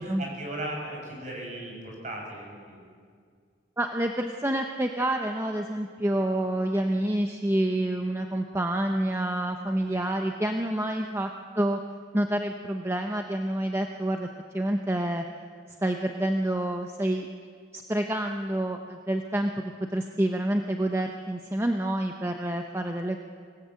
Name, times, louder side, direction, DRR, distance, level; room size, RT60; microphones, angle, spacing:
voice 1, 0.0-2.8, right 1 dB, 40° right, 0 dB, 6.5 m, -37 dB
voice 2, 3.8-11.3 11.6-11.8 12.1-14.3 14.5-15.2 15.8-17.3 17.7-19.5 19.9-23.2, right 1 dB, 15° right, 4 dB, 0.8 m, -28 dB
26.0 x 18.0 x 8.3 m, 2.1 s
head